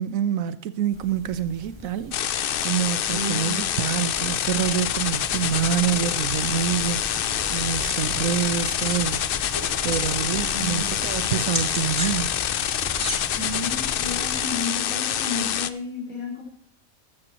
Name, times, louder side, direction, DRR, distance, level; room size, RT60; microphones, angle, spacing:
voice 1, 0.0-7.2 7.5-12.5, right 10 dB, 75° right, 1.1 m, -27 dB
sound 1, 0.9-14.4, left 1 dB, 20° right, 2.7 m, -39 dB
sound 2, 2.1-15.7, left 10 dB, 60° left, 0.5 m, -26 dB
voice 2, 3.1-3.6 10.5-11.1 13.3-16.4, left 2 dB, 80° left, 4.9 m, -32 dB
sound 3, 7.2-13.1, left 1 dB, 5° left, 2.0 m, -36 dB
14.0 x 12.5 x 3.0 m
omnidirectional pair, 1.4 m